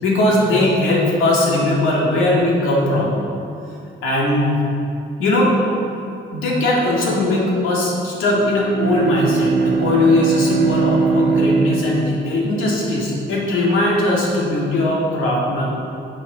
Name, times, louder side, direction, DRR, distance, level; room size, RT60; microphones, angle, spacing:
voice 1, 0.0-3.1 4.0-4.6 5.2-5.5 6.3-15.7, left 2 dB, 90° left, -4 dB, 2.0 m, -19 dB
Bowed string instrument, 8.3-13.1, right 4 dB, 70° right, 0.7 m, -20 dB
10.5 x 6.3 x 4.0 m, 2.7 s
cardioid pair, 90°, 20 cm